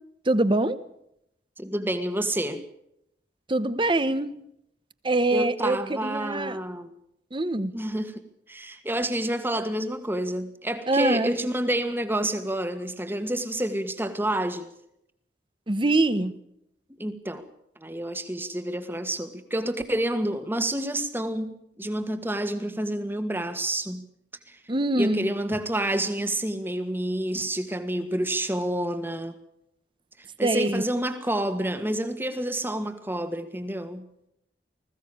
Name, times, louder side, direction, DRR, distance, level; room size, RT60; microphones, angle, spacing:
voice 1, 0.3-0.8 3.5-4.3 5.0-6.6 7.3-7.7 10.9-11.3 15.7-16.3 24.7-25.3 30.4-30.8, right 2 dB, 30° right, 13 dB, 1.0 m, -24 dB
voice 2, 1.6-2.6 5.3-6.9 7.7-14.7 17.0-17.5 17.8-24.1 24.5-24.6 25.0-29.4 30.4-34.0, right 1 dB, 10° right, 9 dB, 1.7 m, -29 dB
20.5 x 15.5 x 8.8 m, 0.79 s
head